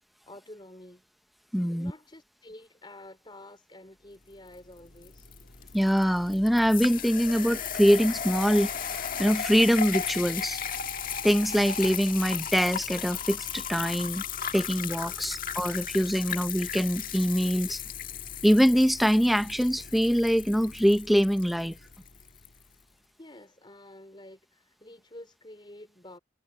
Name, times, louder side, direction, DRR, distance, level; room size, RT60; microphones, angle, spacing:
voice 1, 0.3-1.1 1.6-5.3 15.1-15.2 23.2-26.2, left 1 dB, 25° left, 4.1 m, -49 dB
voice 2, 1.5-1.9 5.7-10.6 11.2-14.2 14.5-17.8 18.4-21.8, equal, ahead, 0.8 m, -24 dB
sound 1, 4.5-22.5, left 8 dB, 50° left, 1.6 m, -36 dB
head